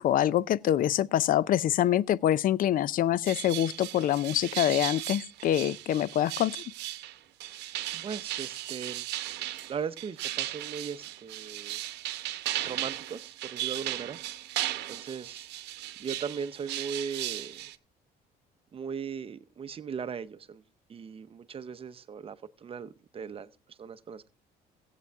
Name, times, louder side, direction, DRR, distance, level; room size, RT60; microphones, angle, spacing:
voice 1, 0.0-6.6, left 11 dB, 55° left, 0.5 m, -25 dB
sound 1, 3.3-17.8, right 14 dB, 85° right, 0.8 m, -36 dB
voice 2, 7.9-9.1 9.5-11.8 12.6-14.2 14.9-15.5 16.0-17.7 18.7-20.6 20.9-24.3, right 6 dB, 35° right, 0.7 m, -38 dB
16.5 x 8.3 x 3.5 m
cardioid pair, 110°, 17 cm